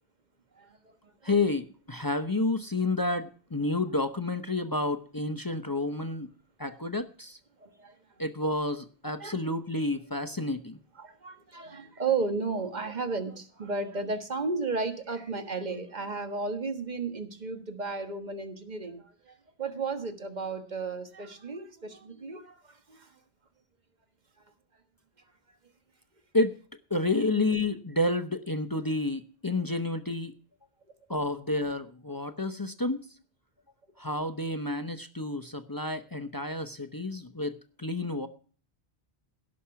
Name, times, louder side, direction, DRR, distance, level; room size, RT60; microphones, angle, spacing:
voice 1, 0.5-1.0 1.2-1.4 6.6-6.8 7.6-7.9 9.2-9.3 11.0-23.1, right 4 dB, 45° right, 7 dB, 1.6 m, -34 dB
voice 2, 1.2-6.3 6.6-7.4 8.2-10.8 26.3-26.6 26.9-30.3 31.1-33.0 34.0-38.3, left 2 dB, 25° left, 9 dB, 0.7 m, -30 dB
17.0 x 6.3 x 5.8 m, 0.42 s
omnidirectional pair, 1.1 m